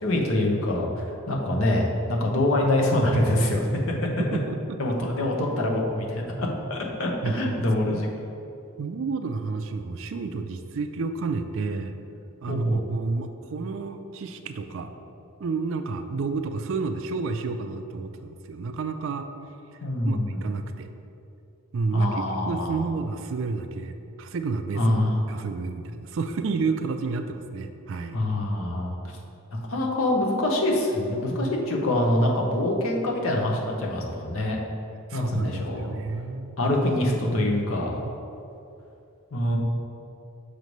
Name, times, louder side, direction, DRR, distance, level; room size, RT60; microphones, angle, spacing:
voice 1, 0.0-3.7 4.8-8.1 12.5-12.8 19.8-20.5 21.9-22.8 24.8-25.2 28.1-28.9 29.7-34.6 35.1-35.9 36.6-38.0 39.3-39.6, left 1 dB, 65° left, -1 dB, 0.9 m, -25 dB
voice 2, 4.2-4.8 7.2-7.6 7.9-8.1 8.8-12.0 12.4-14.9 15.4-19.3 19.7-20.9 21.7-25.0 25.3-28.2 35.1-36.6, right 4 dB, 60° right, 8 dB, 0.4 m, -30 dB
6.5 x 3.2 x 5.3 m, 2.7 s
head